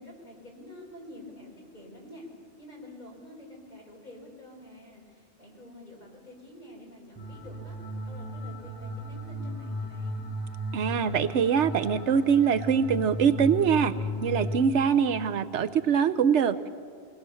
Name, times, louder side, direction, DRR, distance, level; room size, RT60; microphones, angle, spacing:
voice 1, 0.0-2.3 2.6-7.8 8.0-10.3, left 1 dB, 40° left, -2 dB, 5.4 m, -48 dB
sound 1, 7.2-14.6, left 1 dB, 10° left, 7.7 m, -35 dB
voice 2, 10.7-16.7, right 7 dB, 85° right, 13 dB, 1.1 m, -24 dB
22.0 x 19.5 x 7.1 m, 2.1 s
omnidirectional pair, 1.2 m